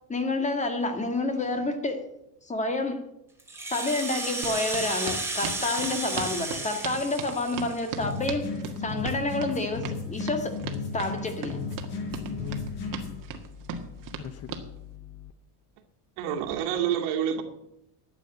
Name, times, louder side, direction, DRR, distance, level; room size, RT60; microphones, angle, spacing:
voice 1, 0.1-2.0 2.5-3.0 3.7-8.5 8.8-10.5 10.9-11.6, left 2 dB, 15° left, 1.9 m, -29 dB
Rattle (instrument), 3.4-8.2, right 2 dB, 5° right, 2.6 m, -33 dB
sound 1, 4.4-14.7, right 6 dB, 45° right, 1.8 m, -37 dB
sound 2, 8.0-13.2, left 5 dB, 55° left, 5.9 m, -34 dB
voice 2, 12.1-13.1 14.2-15.3, left 10 dB, 35° left, 0.7 m, -42 dB
voice 3, 16.2-17.4, right 9 dB, 70° right, 2.5 m, -27 dB
12.0 x 8.1 x 9.0 m
cardioid pair, 135°, 45 cm